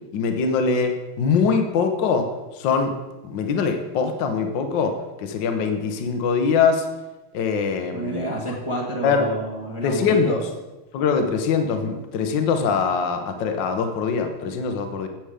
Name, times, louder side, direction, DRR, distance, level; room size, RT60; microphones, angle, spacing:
voice 1, 0.1-2.3 2.6-3.0 3.2-5.0 5.2-6.8 7.3-8.3 9.0-9.3 9.8-10.4 10.9-15.1, left 5 dB, 65° left, 6 dB, 1.5 m, -22 dB
voice 2, 7.9-10.4, right 1 dB, 20° right, -3 dB, 1.1 m, -29 dB
9.0 x 7.0 x 4.9 m, 1.1 s
omnidirectional pair, 2.4 m